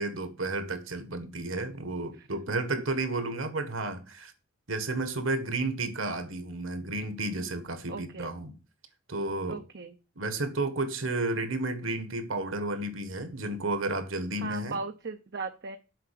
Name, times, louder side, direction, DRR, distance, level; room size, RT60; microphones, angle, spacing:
voice 1, 0.0-4.3 4.7-8.5 9.1-9.6 10.1-14.8, right 2 dB, 70° right, 1.7 m, -32 dB
voice 2, 2.1-2.6 7.9-8.4 9.5-10.0 14.4-15.8, right 4 dB, 55° right, 0.7 m, -38 dB
7.7 x 5.6 x 7.6 m
head